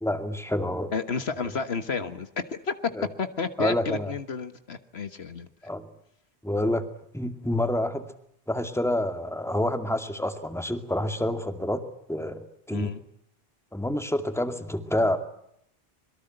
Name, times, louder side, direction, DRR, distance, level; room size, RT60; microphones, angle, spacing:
voice 1, 0.0-0.9 3.0-3.1 3.6-4.1 5.6-5.9 6.4-6.8 7.1-8.1 8.5-11.8 12.1-12.9 13.7-15.2, left 1 dB, ahead, 7 dB, 2.3 m, -28 dB
voice 2, 0.9-2.9 3.2-5.5 12.7-13.0, left 5 dB, 70° left, 10 dB, 1.7 m, -31 dB
26.0 x 22.5 x 8.0 m, 0.73 s
omnidirectional pair, 1.1 m